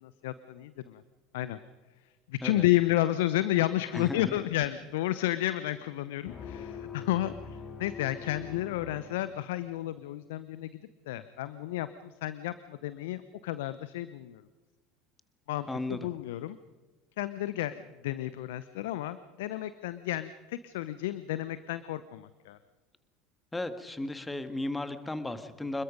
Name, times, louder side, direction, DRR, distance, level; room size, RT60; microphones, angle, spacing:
voice 1, 0.0-1.0 1.3-1.6 2.3-10.7 11.1-14.4 15.5-16.6 17.2-22.6, left 15 dB, 70° left, 15 dB, 0.7 m, -31 dB
voice 2, 3.9-4.4 15.7-16.1 23.5-25.8, left 2 dB, 10° left, 10 dB, 1.8 m, -35 dB
sound 1, 6.3-9.8, left 5 dB, 40° left, 2.6 m, -43 dB
27.0 x 21.5 x 5.2 m, 1.3 s
hypercardioid pair, 70°, 0 cm